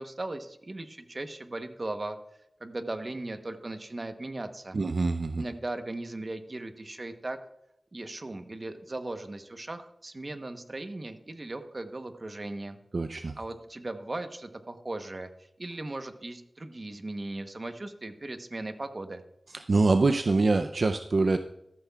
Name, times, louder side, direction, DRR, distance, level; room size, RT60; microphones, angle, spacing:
voice 1, 0.0-2.2 2.6-4.8 5.4-7.4 7.9-12.8 13.2-19.2, right 2 dB, 40° right, 8 dB, 1.0 m, -38 dB
voice 2, 4.7-5.4 12.9-13.3 19.5-21.4, right 3 dB, 65° right, 7 dB, 0.5 m, -25 dB
14.0 x 13.5 x 2.4 m, 0.80 s
wide cardioid pair, 75°, 0 cm